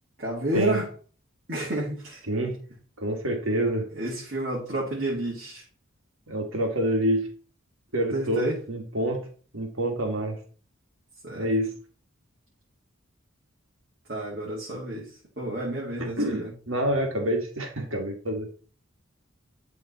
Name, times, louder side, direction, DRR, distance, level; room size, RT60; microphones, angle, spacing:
voice 1, 0.2-0.9 1.5-2.2 3.9-5.6 8.1-8.6 11.2-11.5 14.1-15.1 15.4-16.5, right 1 dB, 50° right, -5 dB, 2.3 m, -30 dB
voice 2, 2.3-2.6 3.0-3.8 6.3-7.3 7.9-9.3 9.5-10.4 11.4-11.7 16.0-18.5, right 1 dB, 80° right, 3 dB, 2.2 m, -27 dB
11.0 x 3.9 x 4.3 m, 0.40 s
head